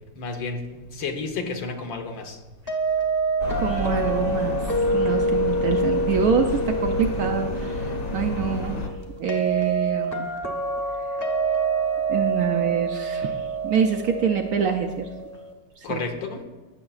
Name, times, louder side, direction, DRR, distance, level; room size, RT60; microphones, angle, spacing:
voice 1, 0.2-2.4 15.8-16.4, left 4 dB, 80° left, 4 dB, 1.7 m, -31 dB
sound 1, 2.7-15.5, right 2 dB, 15° left, 0.6 m, -27 dB
sound 2, 3.4-8.9, left 1 dB, 55° left, 1.7 m, -30 dB
voice 2, 3.6-8.8 9.2-10.3 12.1-15.1 15.8-16.0, right 7 dB, 70° right, 4 dB, 0.9 m, -26 dB
17.5 x 6.7 x 2.4 m, 1.2 s
omnidirectional pair, 2.0 m